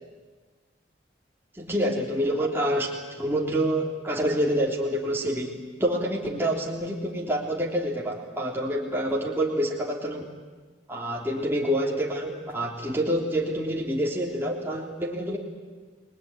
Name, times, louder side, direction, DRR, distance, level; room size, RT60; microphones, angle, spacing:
voice 1, 1.6-2.9 3.2-10.3 10.9-15.4, equal, 10° right, -2 dB, 3.4 m, -27 dB
30.0 x 21.0 x 9.5 m, 1.4 s
head